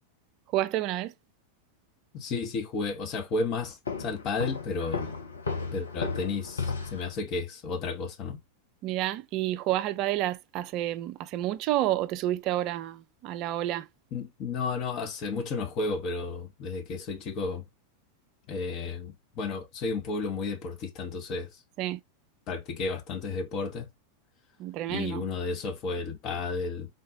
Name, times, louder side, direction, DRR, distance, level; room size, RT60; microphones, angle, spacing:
voice 1, 0.5-1.1 8.8-13.9 21.8-22.0 24.6-25.3, right 14 dB, 40° right, 0.4 m, -29 dB
voice 2, 2.1-5.1 5.7-8.4 14.1-17.6 18.5-21.5 22.5-23.9 24.9-26.9, left 4 dB, 35° left, 1.0 m, -32 dB
Walk footsteps, 3.9-7.2, left 5 dB, 70° left, 0.8 m, -34 dB
4.0 x 2.4 x 3.7 m
figure-of-eight pair, 90°, 0 cm